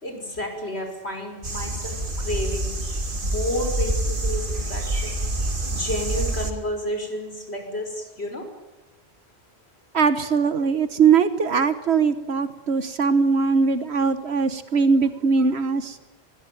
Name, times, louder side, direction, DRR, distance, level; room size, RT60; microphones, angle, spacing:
voice 1, 0.0-2.7 3.1-5.1 5.7-8.5, left 1 dB, 80° left, 5 dB, 5.8 m, -31 dB
sound 1, 1.4-6.5, right 2 dB, 55° right, 2.6 m, -27 dB
voice 2, 9.9-16.0, right 5 dB, 80° right, 11 dB, 1.5 m, -21 dB
24.5 x 21.5 x 9.3 m, 1.1 s
omnidirectional pair, 1.1 m